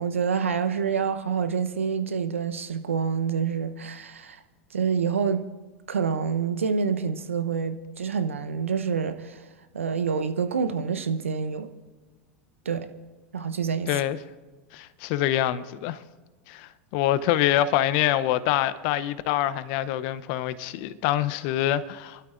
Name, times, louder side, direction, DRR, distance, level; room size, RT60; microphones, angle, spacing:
voice 1, 0.0-4.4 4.7-5.5 5.9-9.5 9.7-11.7 12.6-12.9 13.3-14.0, right 6 dB, 80° right, 0.8 m, -27 dB
voice 2, 13.9-14.2 14.7-16.0 16.5-22.2, left 12 dB, 55° left, 0.6 m, -25 dB
30.0 x 12.5 x 2.5 m
figure-of-eight pair, 90°, 7 cm